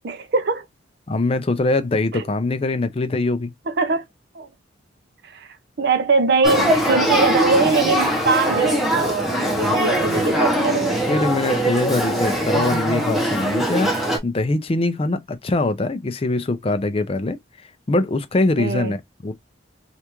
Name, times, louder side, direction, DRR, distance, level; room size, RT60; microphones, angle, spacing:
voice 1, 0.0-0.7 2.1-2.2 3.7-4.0 4.3-4.5 5.2-5.5 5.8-11.0 18.6-18.9, right 4 dB, 55° right, 0.5 m, -22 dB
voice 2, 1.1-3.5 9.5-9.8 11.1-17.4 17.9-19.3, left 2 dB, 30° left, 0.4 m, -23 dB
Male speech man speaking / Child speech kid speaking / Conversation, 6.4-14.2, right 1 dB, ahead, 0.8 m, -21 dB
3.3 x 2.5 x 2.9 m
head